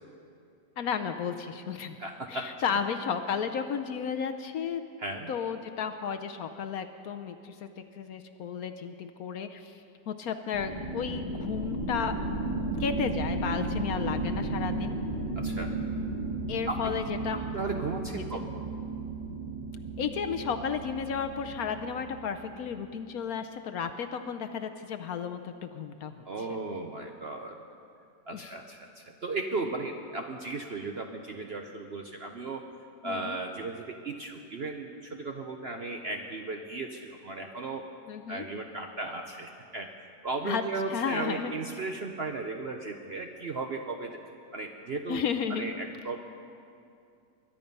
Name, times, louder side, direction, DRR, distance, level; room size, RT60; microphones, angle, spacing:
voice 1, 0.8-2.0 2.3-4.8 5.3-12.1 12.8-15.0 16.5-17.4 18.1-18.4 20.0-26.1 28.3-28.5 33.0-33.4 38.1-38.4 40.4-40.6 40.9-41.6 45.1-45.7, left 7 dB, 65° left, 7 dB, 1.0 m, -33 dB
voice 2, 2.0-2.5 5.0-5.3 15.4-15.8 16.7-16.9 17.5-18.7 26.3-27.6 28.3-32.6 33.0-37.9 38.3-39.9 40.2-44.2 44.5-46.2, right 3 dB, 55° right, 3 dB, 0.7 m, -36 dB
sound 1, 10.5-22.8, right 2 dB, 25° right, 1.4 m, -34 dB
22.0 x 11.0 x 5.4 m, 2.5 s
omnidirectional pair, 1.9 m